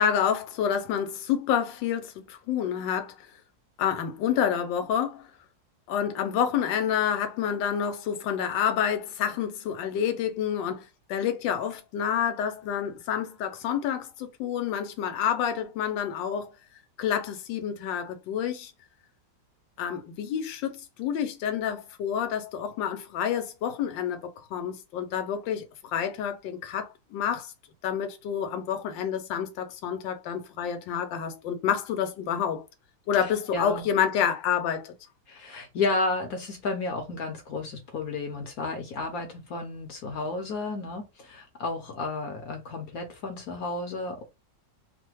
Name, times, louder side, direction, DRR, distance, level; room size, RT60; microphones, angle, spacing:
voice 1, 0.0-3.3 3.8-5.3 5.9-16.5 17.0-18.7 19.8-25.7 25.9-27.5 27.8-32.6 33.1-34.9, left 8 dB, 80° left, 1.4 m, -28 dB
voice 2, 33.2-33.9 35.3-44.3, left 3 dB, 60° left, 1.0 m, -32 dB
3.2 x 2.1 x 3.0 m
omnidirectional pair, 2.0 m